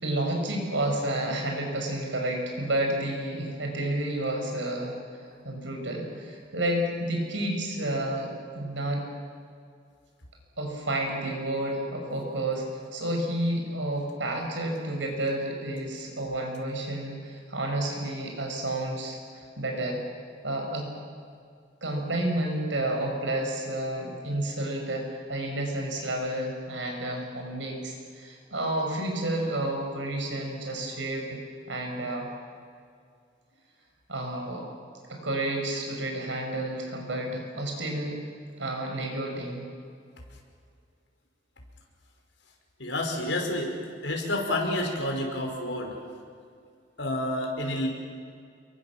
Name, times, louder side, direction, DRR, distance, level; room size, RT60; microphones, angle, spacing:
voice 1, 0.0-5.0 5.4-9.0 10.6-12.7 12.9-20.0 20.4-20.9 21.8-31.4 31.7-32.3 34.1-34.6 35.1-38.2 38.6-39.7, right 1 dB, 85° right, 2 dB, 6.2 m, -30 dB
voice 2, 42.8-43.7 44.0-46.0 47.0-47.9, left 1 dB, 80° left, 1 dB, 5.3 m, -29 dB
29.0 x 23.0 x 7.5 m, 2.2 s
head